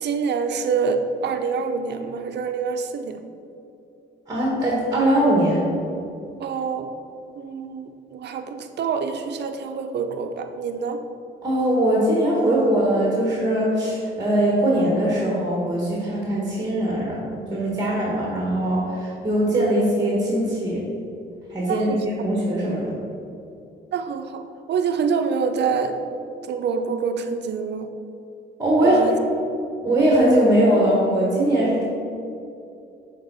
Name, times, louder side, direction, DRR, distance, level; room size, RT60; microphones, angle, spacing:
voice 1, 0.0-3.2 6.4-6.9 7.3-11.0 21.7-22.0 23.9-24.4 24.7-26.0 26.5-27.9 28.8-29.2, right 5 dB, 60° right, 7 dB, 0.6 m, -26 dB
voice 2, 4.3-5.7 11.4-20.8 21.5-22.9 28.6-29.0 29.8-31.8, right 1 dB, 20° right, -4 dB, 1.3 m, -21 dB
6.6 x 3.9 x 4.0 m, 2.6 s
cardioid pair, 90°, 20 cm